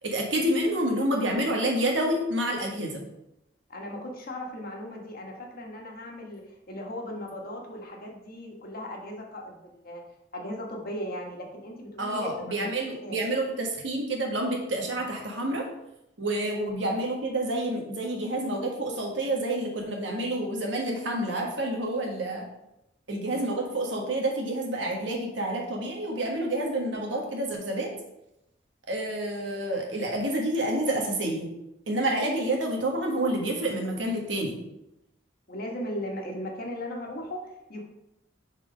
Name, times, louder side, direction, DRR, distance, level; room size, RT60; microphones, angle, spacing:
voice 1, 0.0-3.0 12.0-15.7 16.2-22.5 23.1-27.9 28.9-31.5 31.9-34.6, right 1 dB, 70° right, 1 dB, 1.5 m, -28 dB
voice 2, 3.7-10.0 10.3-12.5 13.0-13.2 35.5-37.8, left 1 dB, 55° left, 1 dB, 1.4 m, -37 dB
5.9 x 4.2 x 5.2 m, 0.86 s
head